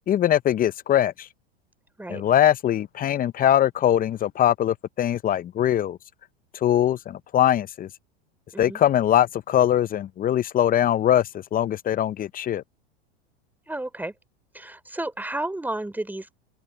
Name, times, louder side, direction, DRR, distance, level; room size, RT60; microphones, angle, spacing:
voice 1, 0.1-1.3 2.1-6.0 6.6-7.9 8.6-12.6, left 11 dB, 25° left, 0.7 m, -22 dB
voice 2, 13.7-14.1 14.5-16.4, right 1 dB, 5° right, 3.4 m, -32 dB
open air
hypercardioid pair, 105°, 33 cm